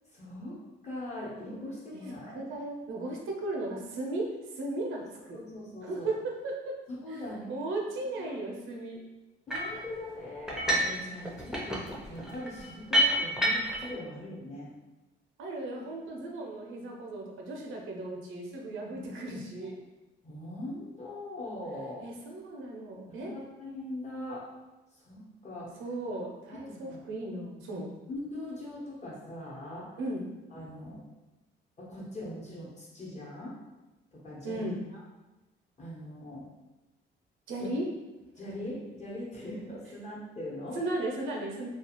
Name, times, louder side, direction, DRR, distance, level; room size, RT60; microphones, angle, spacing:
voice 1, 0.1-0.6 0.8-2.5 5.3-6.1 6.9-7.5 8.2-8.3 9.5-14.7 18.9-19.1 20.2-22.1 23.1-24.4 24.9-25.7 26.7-27.0 28.1-29.9 30.5-31.0 31.8-33.5 34.1-35.0 35.8-36.5 37.6-37.7 38.4-40.8, left 1 dB, 35° left, -6 dB, 1.0 m, -41 dB
voice 2, 2.3-5.4 5.8-6.5 7.1-9.0 15.4-19.7 22.0-23.3 25.8-27.9 30.0-30.3 34.4-34.8 37.5-37.9 40.7-41.7, right 2 dB, 85° right, 0 dB, 0.6 m, -36 dB
sound 1, 9.5-9.8 10.5-11.0 11.3-13.9, equal, 5° right, 0.6 m, -28 dB
2.4 x 2.3 x 2.9 m, 1.1 s
cardioid pair, 90°, 20 cm